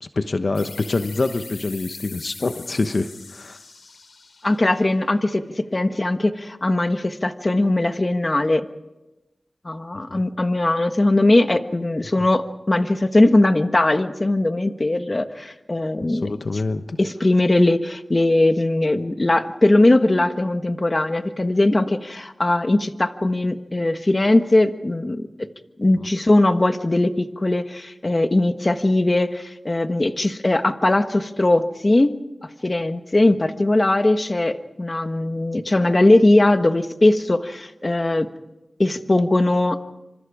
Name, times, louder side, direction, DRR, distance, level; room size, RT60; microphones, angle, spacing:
voice 1, 0.0-3.6 10.1-10.2 12.2-12.3 16.1-17.0 26.0-26.1, left 3 dB, 65° left, 8 dB, 1.1 m, -26 dB
sound 1, 0.5-5.8, left 4 dB, 85° left, 2.8 m, -42 dB
voice 2, 4.4-5.4 5.7-8.7 9.6-16.3 17.0-25.3 25.8-32.1 32.4-38.3 38.8-39.9, left 2 dB, 35° left, 8 dB, 1.4 m, -19 dB
27.5 x 26.0 x 4.9 m, 0.97 s
wide cardioid pair, 60°, 0 cm